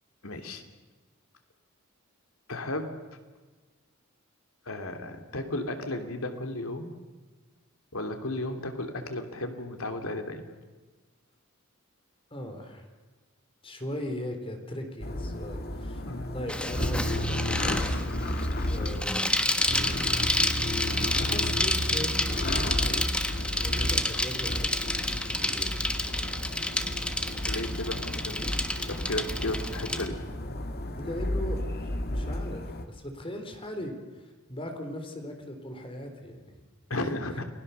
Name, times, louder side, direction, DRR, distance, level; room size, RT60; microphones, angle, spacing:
voice 1, 0.2-0.6 2.5-3.0 4.6-6.9 7.9-10.4 16.0-16.3 27.5-28.6 28.9-30.2 36.9-37.4, left 1 dB, 75° left, 5 dB, 3.0 m, -34 dB
voice 2, 12.3-12.9 13.6-16.0 16.3-18.1 18.7-19.5 21.2-23.1 23.6-25.8 31.0-36.6 37.2-37.3, left 1 dB, 25° left, 5 dB, 3.8 m, -39 dB
sound 1, 15.0-32.8, left 1 dB, 45° left, 1.9 m, -32 dB
Bicycle, 16.5-30.1, left 1 dB, 5° left, 1.3 m, -30 dB
29.5 x 20.5 x 6.9 m, 1.3 s
head